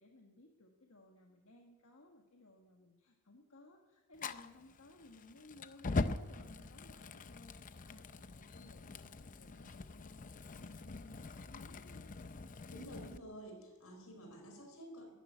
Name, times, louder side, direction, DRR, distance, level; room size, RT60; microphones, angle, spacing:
voice 1, 0.0-12.1, left 2 dB, 70° left, 1 dB, 1.6 m, -60 dB
Fire, 4.2-13.2, left 3 dB, 40° left, 0.6 m, -43 dB
voice 2, 12.7-15.1, right 1 dB, 90° left, 3 dB, 5.0 m, -51 dB
13.5 x 11.5 x 9.2 m, 1.2 s
head